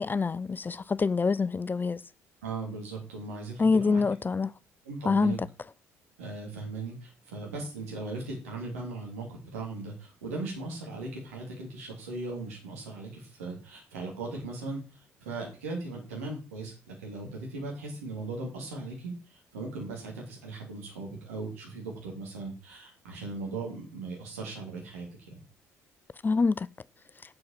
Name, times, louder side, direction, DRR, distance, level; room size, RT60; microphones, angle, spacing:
voice 1, 0.0-2.0 3.6-4.5 5.0-5.4 26.2-26.7, left 4 dB, 25° left, 0.4 m, -26 dB
voice 2, 2.4-4.0 4.8-5.4 6.2-25.4, right 3 dB, 75° right, 3.3 m, -38 dB
7.8 x 6.1 x 6.8 m
figure-of-eight pair, 50°, 8 cm